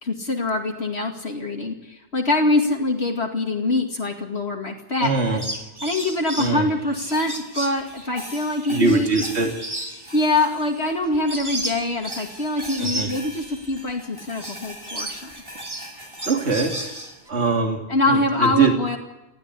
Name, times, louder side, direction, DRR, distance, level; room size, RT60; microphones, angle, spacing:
voice 1, 0.0-5.4 5.8-9.1 10.1-15.3 17.9-19.0, left 2 dB, 65° left, 2 dB, 2.6 m, -24 dB
sound 1, 5.0-14.0 14.3-17.3, right 1 dB, 20° right, 2.0 m, -34 dB
voice 2, 5.0-5.4 6.4-6.7 8.7-9.5 12.8-13.1 16.2-16.7 17.3-18.7, right 3 dB, 70° right, 3 dB, 3.1 m, -22 dB
sound 2, 7.1-11.2 11.5-17.5, equal, 55° right, 8.3 m, -42 dB
20.5 x 15.0 x 9.9 m, 0.98 s
omnidirectional pair, 1.2 m